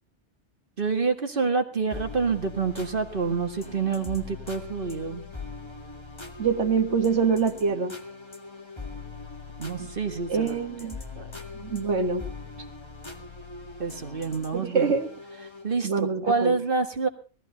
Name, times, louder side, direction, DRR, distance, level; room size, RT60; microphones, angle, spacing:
voice 1, 0.8-5.2 9.6-10.6 11.2-11.3 13.8-14.9 15.6-17.1, right 4 dB, 50° right, 5 dB, 1.9 m, -27 dB
sound 1, 1.9-15.7, left 3 dB, 25° left, 1.9 m, -41 dB
voice 2, 6.4-7.9 10.3-11.0 11.5-12.2 14.5-15.1 15.8-16.6, right 5 dB, 85° right, 7 dB, 1.8 m, -25 dB
20.0 x 14.5 x 4.1 m, 0.35 s
omnidirectional pair, 1.1 m